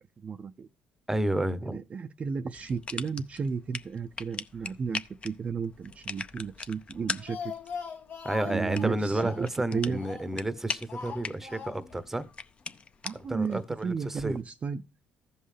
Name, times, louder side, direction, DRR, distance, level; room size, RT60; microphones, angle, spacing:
voice 1, 0.2-0.7 1.7-7.5 8.5-10.0 13.0-14.8, right 5 dB, 35° right, 0.5 m, -34 dB
voice 2, 1.1-1.8 8.2-12.3 13.3-14.4, right 1 dB, 10° right, 0.8 m, -31 dB
sound 1, 2.5-14.4, left 4 dB, 30° left, 0.6 m, -41 dB
Speech, 7.0-10.5 10.9-12.0 12.3-12.4 12.7-12.8, left 6 dB, 60° left, 1.3 m, -41 dB
15.0 x 5.5 x 3.3 m
cardioid pair, 90°, 4 cm